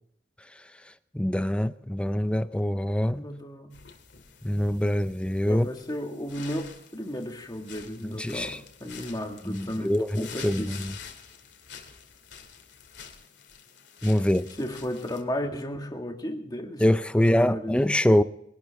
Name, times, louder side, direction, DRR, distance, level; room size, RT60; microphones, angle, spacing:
voice 1, 0.6-3.3 4.4-5.7 8.0-8.6 9.4-10.9 14.0-14.5 16.8-18.2, left 1 dB, 5° left, 0.5 m, -25 dB
voice 2, 3.1-3.8 5.5-10.9 14.6-16.8 17.1-17.9, equal, 20° left, 1.7 m, -34 dB
sound 1, 3.7-15.2, left 7 dB, 65° left, 2.3 m, -47 dB
22.0 x 12.0 x 3.5 m
head